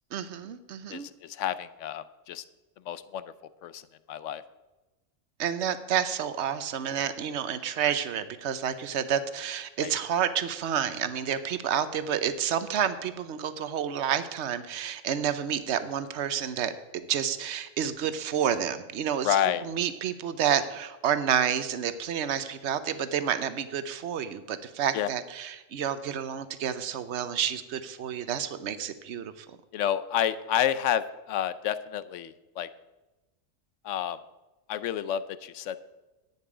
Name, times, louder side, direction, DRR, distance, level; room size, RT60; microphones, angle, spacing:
voice 1, 0.1-1.1 5.4-19.4 19.6-29.5, right 8 dB, 65° right, 12 dB, 1.0 m, -29 dB
voice 2, 0.9-2.4 2.9-3.2 3.6-3.8 4.1-4.4 9.8-9.9 19.2-19.7 24.9-25.1 29.7-32.7 33.8-34.2 34.7-35.8, left 10 dB, 75° left, 15 dB, 0.9 m, -29 dB
11.0 x 9.2 x 4.9 m, 1.1 s
omnidirectional pair, 1.3 m